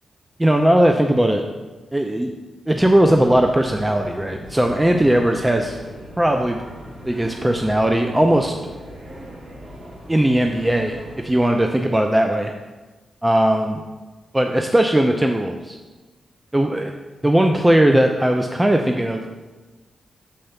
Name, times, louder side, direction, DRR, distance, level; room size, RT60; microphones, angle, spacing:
voice 1, 0.4-1.4 1.9-2.3 2.7-5.8 6.2-6.6 7.1-8.5 10.1-12.5 13.2-13.8 14.3-15.8 16.5-16.9 17.2-19.3, right 1 dB, 10° right, 4 dB, 0.5 m, -18 dB
sound 1, 2.8-11.4, equal, 45° right, 2.4 m, -38 dB
6.8 x 4.3 x 5.7 m, 1.2 s
cardioid pair, 75°, 0 cm